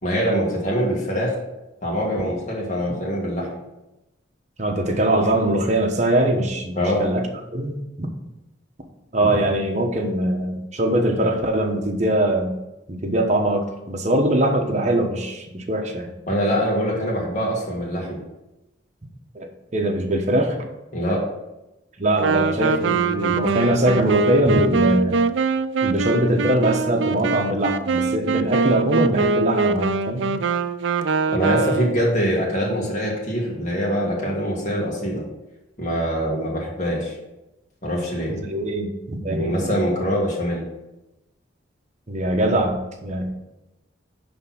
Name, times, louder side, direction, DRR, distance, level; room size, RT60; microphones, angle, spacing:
voice 1, 0.0-1.3 1.8-3.5 6.8-7.1 16.3-18.2 20.9-21.2 31.3-35.2 35.8-37.1 37.8-38.3 39.4-40.6, equal, 40° left, -3 dB, 1.8 m, -23 dB
voice 2, 4.6-7.3 7.5-8.1 9.1-12.6 12.9-16.1 19.3-20.6 22.0-25.2 25.8-30.3 38.3-39.6 42.1-43.3, right 1 dB, 40° right, 3 dB, 1.1 m, -22 dB
Wind instrument woodwind instrument, 22.2-32.1, right 4 dB, 75° right, 0.4 m, -23 dB
10.5 x 3.5 x 5.9 m, 0.94 s
head